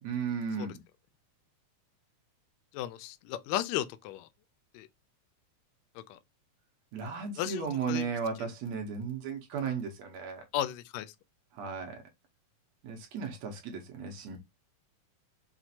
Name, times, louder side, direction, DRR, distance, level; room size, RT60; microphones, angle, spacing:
voice 1, 0.0-0.8 6.9-10.5 11.5-12.0 12.8-14.4, right 6 dB, 65° right, 2.0 m, -35 dB
voice 2, 2.7-4.3 4.7-4.9 6.0-6.2 7.4-8.0 10.5-11.1, left 12 dB, 80° left, 1.6 m, -34 dB
5.8 x 2.4 x 2.7 m
omnidirectional pair, 3.6 m